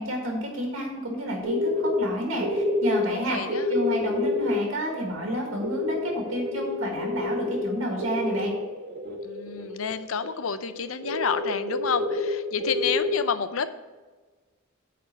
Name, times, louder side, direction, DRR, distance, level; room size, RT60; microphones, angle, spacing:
voice 1, 0.0-8.5, equal, 65° right, 0 dB, 1.7 m, -30 dB
sound 1, 1.4-1.9 2.4-9.8 10.2-10.3 10.6-10.7 11.0-13.1, left 2 dB, 45° right, 1.5 m, -28 dB
voice 2, 3.1-3.7 9.2-13.7, left 6 dB, 75° left, 11 dB, 0.6 m, -29 dB
9.4 x 4.3 x 7.2 m, 1.3 s
head